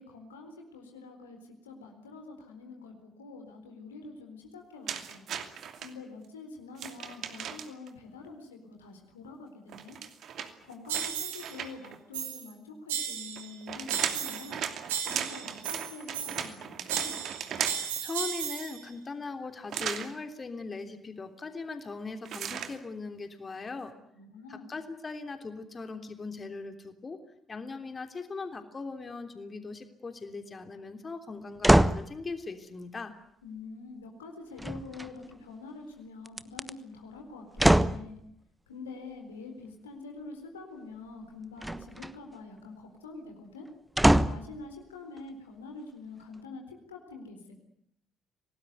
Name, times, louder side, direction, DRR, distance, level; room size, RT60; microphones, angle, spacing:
voice 1, 0.0-5.2 5.8-10.0 10.6-14.6 15.0-17.2 24.1-24.7 33.4-38.2 38.7-43.7 44.3-47.4, left 3 dB, 85° left, 3 dB, 4.1 m, -46 dB
sound 1, 4.9-5.9 6.7-7.9 9.7-12.0 13.4-18.0 19.7-20.1 22.2-22.8, right 8 dB, 55° right, 2.7 m, -36 dB
sound 2, 10.9-11.5 12.1-12.5 12.9-13.5 13.9-14.6 14.9-16.5 16.9-18.8, right 9 dB, 80° right, 3.2 m, -35 dB
voice 2, 18.0-23.9 24.5-27.2 27.5-33.1, left 4 dB, 30° left, 7 dB, 3.2 m, -39 dB
sound 3, 31.6-32.1 34.6-35.3 36.3-36.7 37.6-38.1 41.6-42.1 44.0-44.5 45.2-45.3, right 1 dB, 5° right, 1.2 m, -23 dB
27.0 x 19.0 x 9.4 m, 0.73 s
figure-of-eight pair, 50°, 0 cm